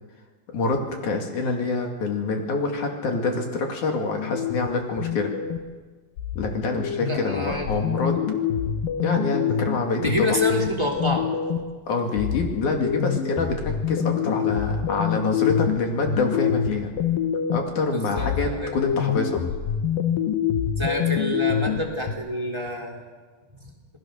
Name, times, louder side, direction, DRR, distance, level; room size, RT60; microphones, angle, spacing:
voice 1, 0.5-5.3 6.4-8.2 9.0-10.3 11.9-16.9 17.5-19.4, left 3 dB, 65° left, 2 dB, 3.7 m, -26 dB
sound 1, 4.2-5.8 6.2-11.8 12.2-17.8 18.2-22.1, left 8 dB, 85° left, 3.0 m, -26 dB
voice 2, 7.0-7.8 10.0-11.3 17.9-18.7 20.8-23.0, left 1 dB, 10° right, 0 dB, 2.9 m, -27 dB
27.5 x 19.0 x 6.5 m, 1.4 s
omnidirectional pair, 3.9 m